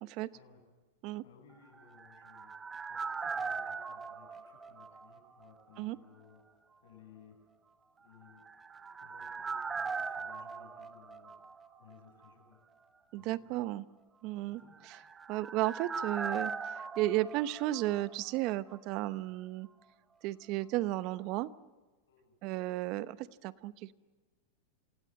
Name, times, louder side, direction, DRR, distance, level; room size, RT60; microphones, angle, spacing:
voice 1, 1.2-6.4 6.8-7.4 8.0-8.4 9.0-12.6 13.1-13.7 14.2-14.8 19.1-19.3 22.1-22.3, left 7 dB, 75° left, 2 dB, 8.0 m, -60 dB
sound 1, 1.7-5.5 5.8-5.9 8.3-12.0 12.2-12.3 14.6-18.5 18.7-18.8, right 5 dB, 15° right, 1.3 m, -40 dB
voice 2, 13.1-13.9 14.2-14.6 15.3-16.5 17.0-19.7 20.2-21.5 22.4-23.9, right 16 dB, 50° right, 16 dB, 0.9 m, -33 dB
27.5 x 17.0 x 7.8 m, 1.3 s
hypercardioid pair, 120°, 0 cm